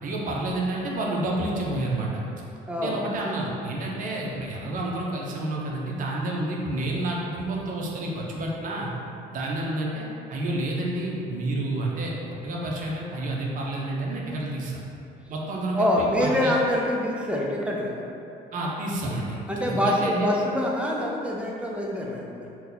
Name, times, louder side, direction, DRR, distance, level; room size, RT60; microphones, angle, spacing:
voice 1, 0.0-2.2 2.8-8.9 9.3-12.1 12.4-14.8 15.3-16.5 18.5-19.4 19.7-20.3, right 2 dB, 50° right, -2 dB, 0.6 m, -29 dB
voice 2, 2.7-3.0 15.7-18.0 19.5-22.5, left 1 dB, 5° right, -2 dB, 0.4 m, -25 dB
2.8 x 2.2 x 3.8 m, 2.8 s
cardioid pair, 110°, 17 cm